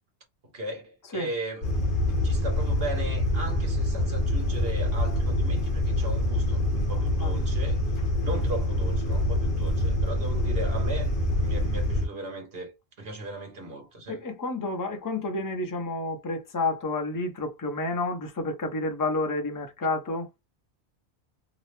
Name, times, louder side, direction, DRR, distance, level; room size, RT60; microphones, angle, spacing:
voice 1, 0.5-1.7 2.2-7.8 8.2-14.2, right 1 dB, 65° right, 1.4 m, -37 dB
sound 1, 1.6-12.1, left 1 dB, 55° left, 1.0 m, -26 dB
voice 2, 7.0-7.5 14.1-20.3, left 2 dB, 25° left, 0.5 m, -30 dB
2.9 x 2.0 x 3.2 m
omnidirectional pair, 1.1 m